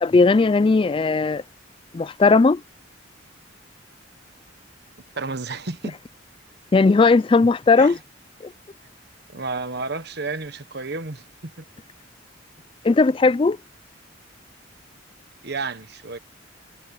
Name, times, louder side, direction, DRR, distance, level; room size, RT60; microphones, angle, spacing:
voice 1, 0.0-1.4 1.9-2.6 6.7-8.0 8.4-8.5 12.8-13.6, left 3 dB, 25° left, 0.3 m, -17 dB
voice 2, 5.1-6.0 7.8-8.0 9.3-11.6 15.4-16.2, right 3 dB, 55° right, 1.2 m, -31 dB
head